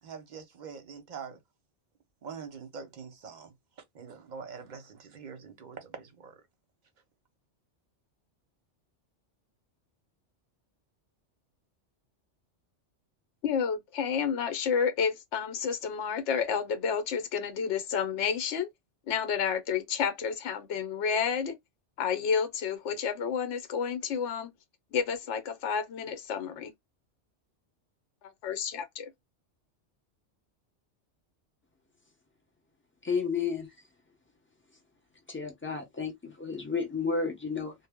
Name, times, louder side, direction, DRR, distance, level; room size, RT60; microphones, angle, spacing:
voice 1, 0.0-1.4 2.2-3.5 3.9-6.4, right 6 dB, 50° right, 0.7 m, -44 dB
voice 2, 13.4-18.7 19.1-21.6 22.0-24.5 24.9-26.7 28.4-29.1, left 6 dB, 75° left, 0.9 m, -30 dB
voice 3, 33.0-33.7 35.3-37.7, left 5 dB, 15° left, 0.4 m, -31 dB
2.0 x 2.0 x 3.4 m
omnidirectional pair, 1.2 m